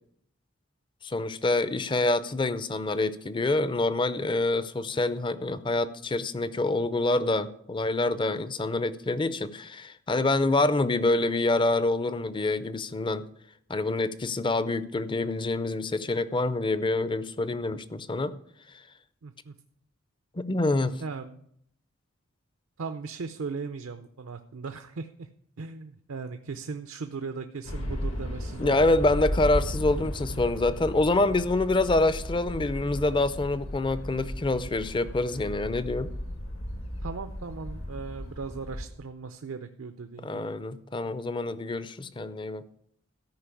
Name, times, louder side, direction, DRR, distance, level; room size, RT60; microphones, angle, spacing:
voice 1, 1.0-13.3 13.7-18.3 20.4-21.0 28.6-36.1 40.2-42.7, left 2 dB, 25° left, 0.5 m, -26 dB
voice 2, 19.2-19.5 21.0-21.4 22.8-25.3 25.6-28.8 37.0-40.4, right 4 dB, 75° right, 0.6 m, -38 dB
sound 1, 27.6-38.9, equal, 75° left, 1.7 m, -35 dB
13.5 x 5.2 x 8.3 m
head